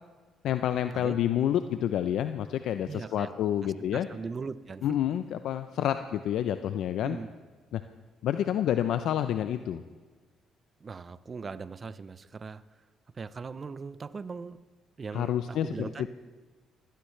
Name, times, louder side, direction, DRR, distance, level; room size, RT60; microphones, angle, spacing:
voice 1, 0.4-4.1 4.8-7.2 7.7-7.8 8.2-9.8 15.1-16.1, left 10 dB, 75° left, 10 dB, 0.6 m, -28 dB
voice 2, 2.8-3.3 3.6-5.0 7.0-7.3 10.8-12.6 13.1-14.6 15.0-16.1, right 5 dB, 40° right, 16 dB, 0.7 m, -39 dB
21.5 x 16.0 x 3.3 m, 1.4 s
supercardioid pair, 65°, 0 cm